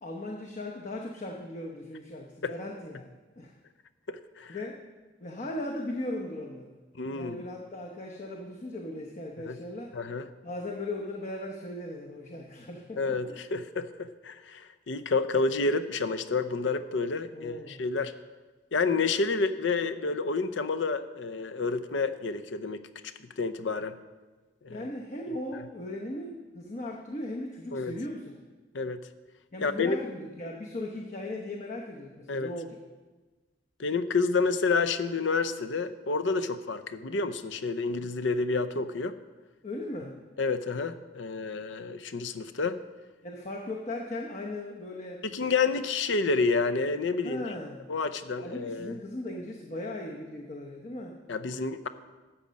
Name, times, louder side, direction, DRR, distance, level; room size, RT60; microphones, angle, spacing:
voice 1, 0.0-3.5 4.5-4.8 5.2-6.8 7.1-10.0 10.4-13.4 17.3-17.8 24.7-28.3 29.5-32.8 39.6-40.2 43.2-45.2 47.2-47.9 48.4-51.2, left 1 dB, 40° left, 1 dB, 0.9 m, -38 dB
voice 2, 4.1-4.6 7.0-7.4 9.5-9.6 9.9-10.3 13.0-18.1 18.7-22.8 23.4-24.0 24.6-24.9 27.7-28.0 28.7-29.0 29.6-30.0 32.3-32.5 33.8-39.1 40.4-42.8 45.2-47.4 47.9-49.0 51.3-51.9, left 4 dB, 70° left, 12 dB, 0.6 m, -29 dB
12.5 x 7.4 x 5.3 m, 1.3 s
head